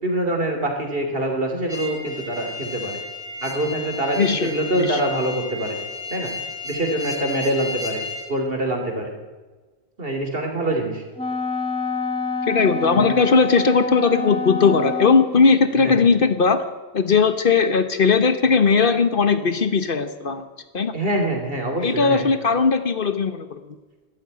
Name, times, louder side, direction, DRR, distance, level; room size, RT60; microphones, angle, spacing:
voice 1, 0.0-3.0 3.4-5.8 6.1-6.3 6.6-8.0 8.3-9.1 10.0-11.0 12.9-13.0 15.8-16.0 20.9-22.2, right 1 dB, 60° right, 3 dB, 3.1 m, -25 dB
sound 1, 1.7-8.3, left 3 dB, 80° right, 3.9 m, -33 dB
voice 2, 4.2-5.0 12.5-16.6 16.9-20.5 20.7-20.9 21.8-23.6, left 5 dB, 55° left, 10 dB, 1.2 m, -18 dB
Wind instrument woodwind instrument, 11.2-15.5, left 3 dB, 5° left, 1.5 m, -27 dB
12.5 x 12.0 x 9.5 m, 1.3 s
omnidirectional pair, 1.1 m